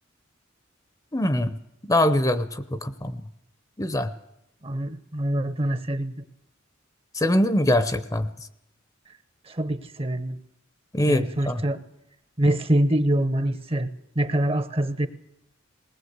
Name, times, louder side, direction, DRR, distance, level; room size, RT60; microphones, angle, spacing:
voice 1, 1.1-1.6 1.8-3.2 3.8-4.1 7.1-8.3 10.9-11.6, left 1 dB, 20° left, 12 dB, 0.8 m, -23 dB
voice 2, 4.6-6.2 9.5-10.4 11.1-11.8 12.4-13.9 14.1-15.1, right 1 dB, 30° right, 13 dB, 0.9 m, -24 dB
20.0 x 19.0 x 8.1 m, 0.84 s
head